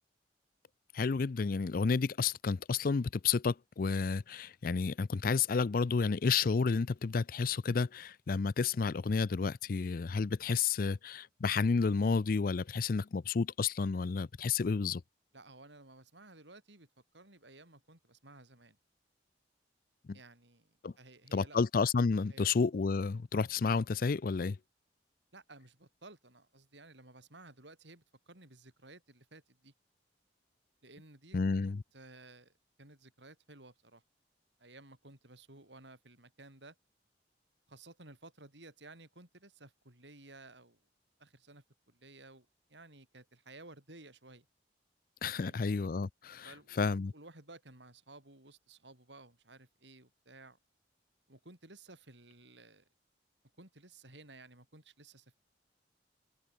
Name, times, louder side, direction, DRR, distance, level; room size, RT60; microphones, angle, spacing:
voice 1, 0.9-15.0 20.1-20.2 20.8-20.9 21.3-24.6 31.3-31.8 45.2-46.5 46.8-47.1, left 5 dB, 50° left, 0.4 m, -31 dB
voice 2, 15.3-16.9 17.1-18.8 20.1-21.6 22.3-22.5 25.3-29.7 30.8-31.7 31.9-32.5 32.8-34.0 34.6-36.8 37.7-40.8 41.2-44.5 45.3-45.7 46.4-50.6 51.3-52.9 53.6-55.4, right 2 dB, 80° right, 7.0 m, -55 dB
head